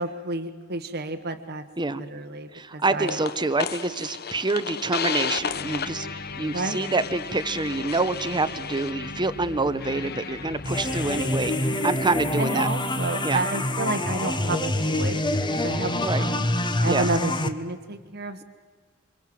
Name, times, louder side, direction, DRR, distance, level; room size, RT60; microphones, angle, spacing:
voice 1, 0.0-1.6 2.0-3.2 6.5-6.8 11.6-11.8 12.4-15.2 15.6-16.5 16.8-18.4, right 2 dB, 50° right, 7 dB, 1.3 m, -30 dB
voice 2, 2.5-12.7 13.2-13.4 16.0-16.2 16.8-17.1, right 3 dB, 20° right, 11 dB, 1.0 m, -27 dB
sound 1, 3.1-12.4, left 6 dB, 50° left, 1.0 m, -34 dB
sound 2, 10.6-17.5, left 1 dB, 20° left, 1.4 m, -26 dB
29.0 x 25.5 x 7.8 m, 1.4 s
head